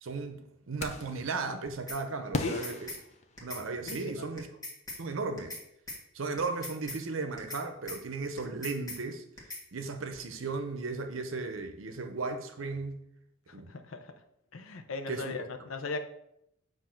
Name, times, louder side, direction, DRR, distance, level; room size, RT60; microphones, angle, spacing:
voice 1, 0.0-2.9 3.4-4.5 5.0-5.6 6.1-9.2 9.7-13.0 13.5-13.7 15.1-15.5, right 3 dB, 75° right, 0.7 m, -36 dB
sound 1, 0.8-1.3 2.3-3.8, left 2 dB, 35° left, 0.5 m, -37 dB
sound 2, 1.9-2.0 2.4-3.0 3.4-3.6 3.9-4.0 4.4-5.0 5.4-5.6 5.9-6.0 6.4-7.0 7.4-7.6 7.9-8.0 8.4-9.0 9.4-9.6, left 2 dB, 15° left, 1.3 m, -40 dB
voice 2, 3.9-4.3 13.5-14.1 14.5-16.0, left 3 dB, 75° left, 0.7 m, -38 dB
7.5 x 2.7 x 5.7 m
head